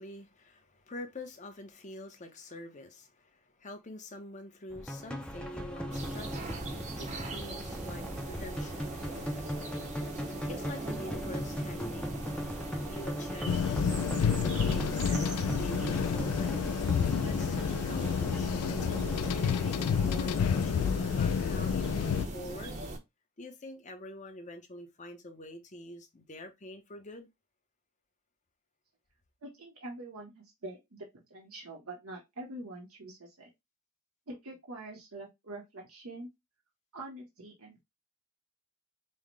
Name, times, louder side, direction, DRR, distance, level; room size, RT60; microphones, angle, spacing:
voice 1, 0.0-6.6 7.0-8.9 10.5-12.2 12.8-16.6 17.2-18.6 19.3-22.8 23.4-27.3, left 1 dB, 35° left, 0.8 m, -46 dB
sound 1, 4.7-20.9, equal, 5° left, 0.5 m, -38 dB
sound 2, 5.9-23.0, right 2 dB, 35° right, 0.7 m, -41 dB
sound 3, 13.5-22.3, left 7 dB, 85° left, 0.4 m, -29 dB
voice 2, 29.4-33.5 34.3-36.3 36.9-37.8, right 2 dB, 80° right, 1.0 m, -45 dB
5.6 x 2.1 x 3.2 m
head